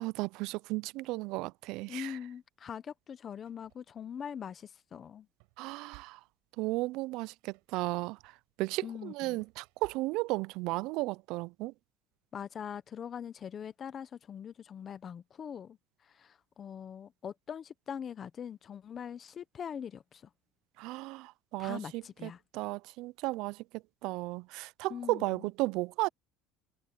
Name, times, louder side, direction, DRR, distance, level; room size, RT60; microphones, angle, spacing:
voice 1, 0.0-2.1 5.6-6.2 6.6-8.2 8.6-11.7 20.8-23.6 24.0-26.1, right 21 dB, 60° right, 0.3 m, -34 dB
voice 2, 1.9-5.3 8.8-9.4 12.3-15.8 16.0-20.3 21.6-22.4 24.9-25.5, left 8 dB, 25° left, 0.6 m, -42 dB
sound 1, 2.3-2.4 3.1-4.5 5.0-10.5, right 37 dB, 85° right, 6.8 m, -63 dB
cardioid pair, 175°, 0 cm